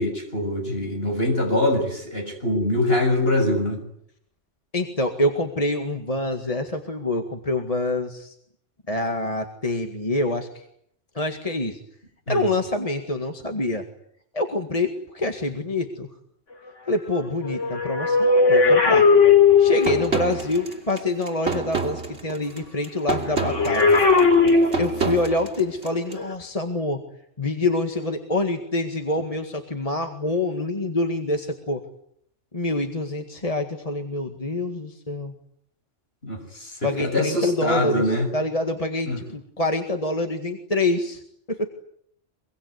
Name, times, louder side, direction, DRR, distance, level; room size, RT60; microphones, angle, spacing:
voice 1, 0.0-3.8 12.3-12.5 36.2-38.3 39.1-39.2, left 1 dB, 55° left, 4 dB, 6.9 m, -23 dB
voice 2, 4.7-8.3 8.9-10.5 11.2-11.8 12.3-13.8 14.3-16.1 16.9-19.1 19.6-23.8 24.8-27.0 27.4-31.8 32.5-35.3 36.8-41.2 41.5-41.7, left 2 dB, 30° left, 5 dB, 2.1 m, -26 dB
sound 1, 17.4-20.2 23.3-25.3 26.1-26.3, left 5 dB, 90° left, 3.5 m, -17 dB
sound 2, 19.8-26.2, right 4 dB, 65° right, 3.2 m, -29 dB
24.5 x 23.5 x 9.6 m, 0.70 s
omnidirectional pair, 1.2 m